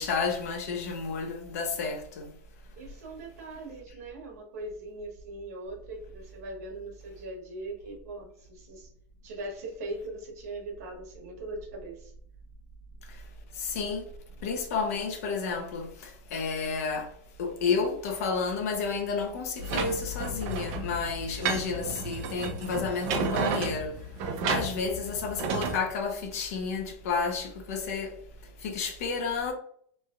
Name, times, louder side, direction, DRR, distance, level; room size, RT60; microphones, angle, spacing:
voice 1, 0.0-2.3 13.1-13.2 13.5-14.0 14.4-17.1 17.4-24.0 24.5-28.2 28.6-29.5, left 5 dB, 70° left, 0.7 m, -31 dB
voice 2, 2.8-8.9 9.2-12.1, right 2 dB, 80° right, 1.0 m, -40 dB
sound 1, 19.6-25.8, right 4 dB, 50° right, 0.5 m, -32 dB
3.1 x 2.7 x 2.3 m
supercardioid pair, 155°, 8 cm